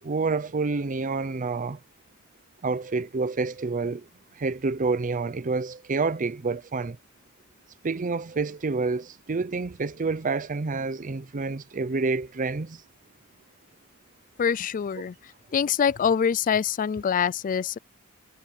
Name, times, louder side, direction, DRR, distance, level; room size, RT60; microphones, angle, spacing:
voice 1, 0.0-1.8 2.6-4.1 4.4-7.0 7.8-12.8, right 4 dB, 35° right, 0.5 m, -28 dB
voice 2, 14.4-15.1 15.5-17.8, left 7 dB, 35° left, 0.3 m, -24 dB
head